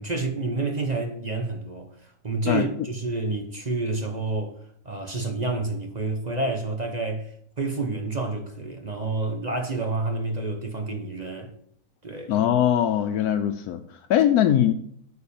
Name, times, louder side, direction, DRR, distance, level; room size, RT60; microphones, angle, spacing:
voice 1, 0.0-4.6 4.8-11.5 12.0-12.4, right 3 dB, 35° right, 0.8 m, -29 dB
voice 2, 12.3-14.7, left 10 dB, 80° left, 1.1 m, -21 dB
8.7 x 4.6 x 7.0 m
omnidirectional pair, 1.6 m